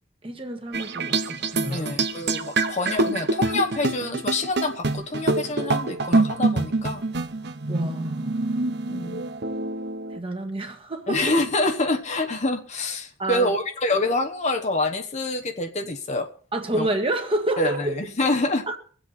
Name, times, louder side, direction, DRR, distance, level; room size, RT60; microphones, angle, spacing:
voice 1, 0.2-2.0 7.7-8.6 10.1-11.3 13.2-13.5 16.5-17.9 18.7-18.8, right 1 dB, 30° right, 1.7 m, -29 dB
sound 1, 0.7-10.2, right 3 dB, 60° right, 1.0 m, -26 dB
voice 2, 1.7-7.0 8.9-9.2 11.1-16.3 16.7-16.9 17.6-18.6, left 2 dB, 40° left, 1.1 m, -26 dB
23.5 x 7.9 x 4.2 m
head